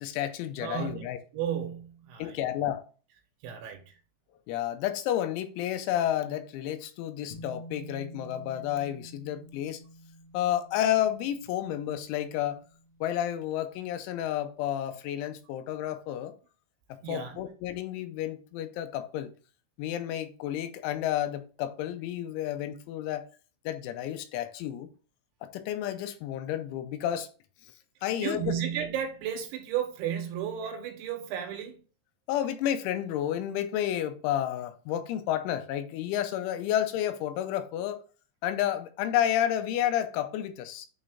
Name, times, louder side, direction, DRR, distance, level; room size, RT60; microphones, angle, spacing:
voice 1, 0.0-1.2 2.2-2.8 3.5-3.6 4.5-9.8 10.3-12.6 13.0-16.3 16.9-19.3 19.8-23.3 23.7-24.9 25.4-27.3 28.0-28.5 32.3-38.0 38.4-40.9, left 11 dB, 85° left, 3.1 m, -31 dB
voice 2, 0.6-2.7 3.4-4.0 17.0-17.5 28.0-31.8, right 9 dB, 75° right, 3.2 m, -34 dB
sound 1, 7.3-13.9, equal, 70° left, 3.3 m, -49 dB
8.7 x 3.1 x 3.5 m
omnidirectional pair, 5.4 m